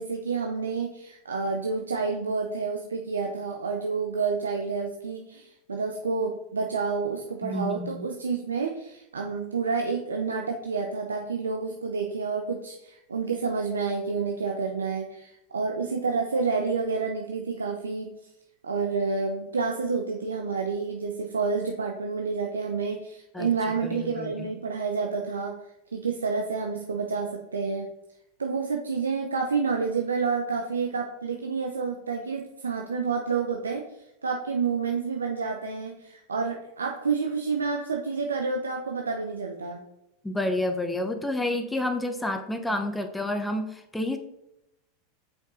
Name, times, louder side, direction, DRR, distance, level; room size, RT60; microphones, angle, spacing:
voice 1, 0.0-18.1 18.6-25.5 25.9-27.9 28.4-33.8 34.2-39.8, right 4 dB, 90° right, 2 dB, 0.7 m, -29 dB
voice 2, 7.4-8.1 23.3-23.5 23.8-24.5 40.2-44.2, left 1 dB, 10° left, 6 dB, 1.0 m, -29 dB
7.1 x 5.4 x 3.8 m, 0.85 s
hypercardioid pair, 95°, 0 cm